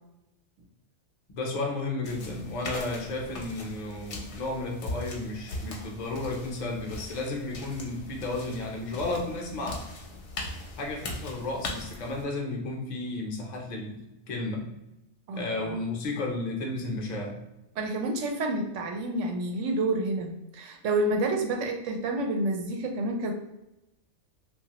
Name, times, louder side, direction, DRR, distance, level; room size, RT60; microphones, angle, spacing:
voice 1, 1.3-9.9 10.8-14.7 15.3-17.4, left 2 dB, 50° left, 0 dB, 0.6 m, -33 dB
sound 1, 2.0-12.2, left 2 dB, 70° left, 0.9 m, -40 dB
voice 2, 15.3-15.8 17.8-23.3, right 2 dB, 85° right, 2 dB, 0.9 m, -29 dB
2.9 x 2.3 x 2.8 m, 0.94 s
omnidirectional pair, 1.2 m